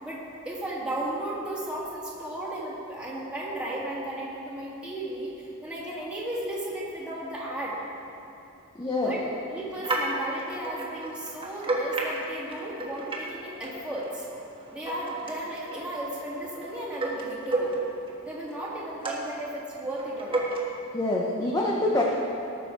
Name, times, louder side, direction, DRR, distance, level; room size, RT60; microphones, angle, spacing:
voice 1, 0.0-7.8 9.0-14.3 14.7-17.8 18.2-20.5, right 1 dB, 5° right, -7 dB, 2.1 m, -35 dB
voice 2, 8.7-9.2 20.9-22.0, left 2 dB, 20° left, -3 dB, 0.9 m, -26 dB
sound 1, 9.7-13.4 13.6-18.1 18.5-19.4 19.9-20.6, right 2 dB, 25° right, 1.6 m, -32 dB
18.5 x 6.8 x 4.6 m, 3.0 s
head